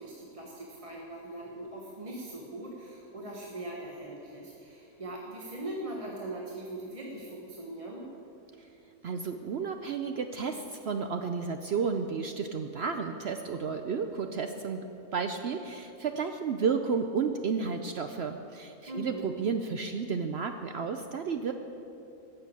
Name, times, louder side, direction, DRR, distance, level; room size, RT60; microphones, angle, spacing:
voice 1, 0.0-8.1 18.9-19.3, right 1 dB, 25° right, -2 dB, 1.1 m, -41 dB
voice 2, 9.0-14.9 15.1-21.5, right 5 dB, 60° right, 6 dB, 0.7 m, -32 dB
13.5 x 7.0 x 8.5 m, 2.8 s
omnidirectional pair, 1.6 m